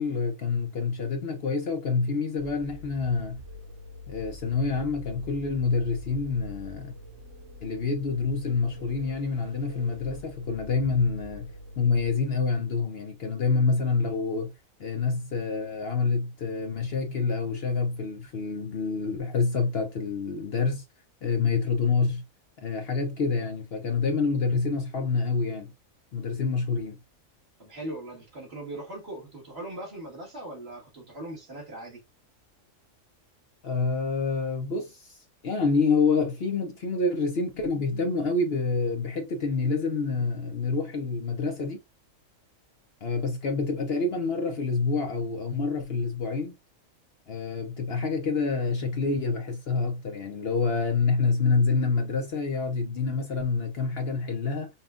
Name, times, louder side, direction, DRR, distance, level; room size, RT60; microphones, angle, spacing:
voice 1, 0.0-3.4 4.1-6.9 7.6-11.5 11.8-14.5 14.8-20.8 21.2-22.2 22.6-25.7 26.1-27.0 33.6-35.2 35.4-41.8 43.0-46.5 47.3-54.7, left 4 dB, 55° left, 0.8 m, -27 dB
sound 1, 2.4-12.1, left 1 dB, 80° right, 3.2 m, -45 dB
voice 2, 27.6-32.0, right 1 dB, 50° right, 1.9 m, -39 dB
5.5 x 2.3 x 2.5 m
omnidirectional pair, 1.4 m